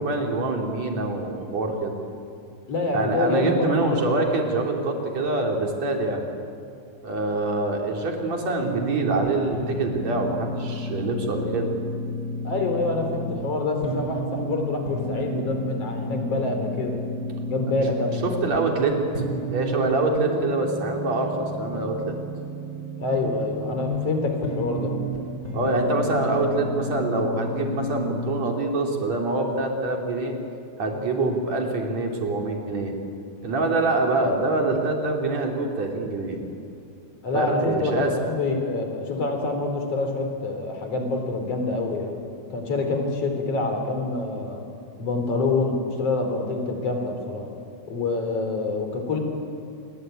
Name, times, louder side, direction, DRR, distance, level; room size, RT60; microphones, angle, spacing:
voice 1, 0.0-1.9 2.9-6.2 7.0-11.7 18.2-19.2 19.5-22.2 25.5-30.3 30.8-32.9 33.4-36.4 37.3-38.3, right 2 dB, 50° right, 1 dB, 4.3 m, -25 dB
voice 2, 2.7-4.0 12.4-17.0 17.5-18.2 23.0-24.9 37.2-42.1 42.5-44.6 45.0-47.5 47.9-49.2, left 3 dB, 45° left, 4 dB, 4.5 m, -26 dB
sound 1, 8.6-28.4, equal, 25° left, 4.9 m, -32 dB
27.5 x 22.0 x 9.3 m, 2.4 s
omnidirectional pair, 4.0 m